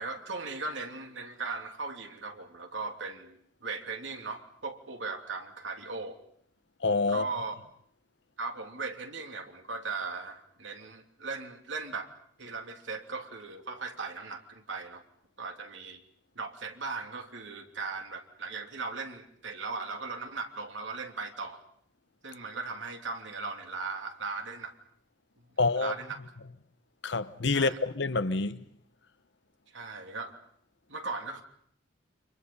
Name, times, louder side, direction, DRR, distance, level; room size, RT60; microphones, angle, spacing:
voice 1, 0.0-6.2 7.1-7.5 8.4-12.1 12.4-15.0 15.4-16.0 16.3-21.6 22.2-24.7 25.8-26.2 27.5-27.8 29.7-30.4 30.9-31.4, right 4 dB, 80° right, 3.1 m, -38 dB
voice 2, 6.8-7.2 25.6-25.9 27.0-28.6, left 3 dB, 70° left, 1.0 m, -27 dB
30.0 x 26.0 x 5.5 m
head